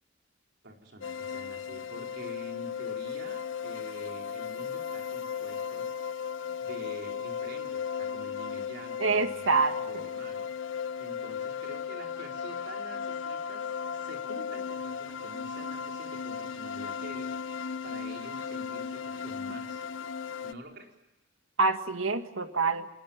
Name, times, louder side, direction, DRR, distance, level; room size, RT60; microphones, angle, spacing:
voice 1, 0.6-5.9 6.6-10.5 11.0-19.9 20.4-20.9, right 1 dB, 60° right, 2 dB, 4.4 m, -47 dB
sound 1, 1.0-20.5, left 7 dB, 70° left, 0.8 m, -36 dB
voice 2, 9.0-10.1 21.6-22.9, right 3 dB, 85° right, 8 dB, 1.9 m, -27 dB
29.0 x 20.0 x 7.3 m, 0.96 s
head